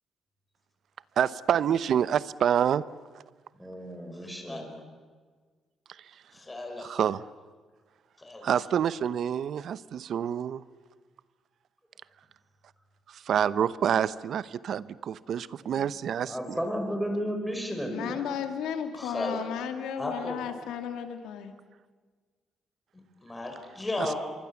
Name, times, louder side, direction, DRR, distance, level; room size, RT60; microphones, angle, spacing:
voice 1, 1.2-2.8 6.8-7.2 8.4-10.6 13.1-16.6 24.0-24.1, right 9 dB, 65° right, 17 dB, 0.7 m, -27 dB
voice 2, 3.6-4.6 16.3-18.2, equal, ahead, 3 dB, 5.7 m, -33 dB
voice 3, 4.1-4.6 6.3-7.1 8.2-8.5 19.0-19.4 20.0-20.6 22.9-24.2, left 2 dB, 20° left, 3 dB, 5.0 m, -35 dB
voice 4, 17.9-21.5, left 8 dB, 90° left, 6 dB, 2.3 m, -34 dB
26.0 x 23.5 x 7.1 m, 1.5 s
cardioid pair, 90°, 0 cm